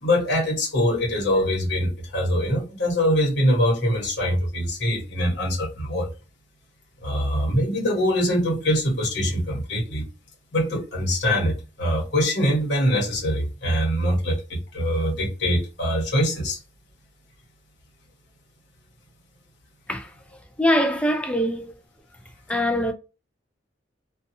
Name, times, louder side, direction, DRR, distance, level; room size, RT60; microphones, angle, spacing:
voice 1, 0.0-6.1 7.0-10.0 10.5-16.6, equal, 65° left, 1.0 m, -23 dB
voice 2, 20.6-21.7 22.5-22.9, equal, 5° left, 0.4 m, -22 dB
2.7 x 2.4 x 2.6 m
head